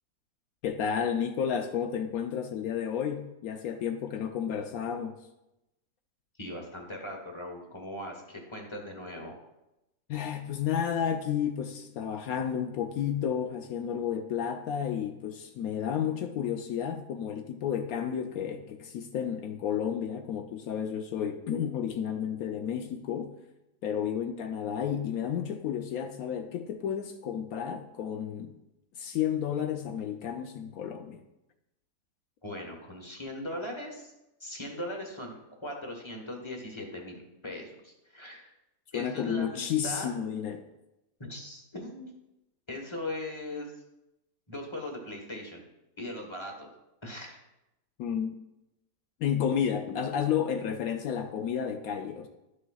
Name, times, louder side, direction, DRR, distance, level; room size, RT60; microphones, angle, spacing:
voice 1, 0.6-5.2 10.1-23.3 23.8-28.5 29.0-31.2 38.9-40.6 48.0-48.4 49.2-52.3, left 8 dB, 70° left, 6 dB, 1.0 m, -31 dB
voice 2, 6.4-9.4 32.4-34.1 34.4-38.5 38.9-40.1 41.2-42.1 42.7-43.7 44.5-45.6 46.0-46.7 47.0-47.4, left 1 dB, 20° left, 1 dB, 1.1 m, -39 dB
12.5 x 6.4 x 2.3 m, 0.92 s
omnidirectional pair, 1.7 m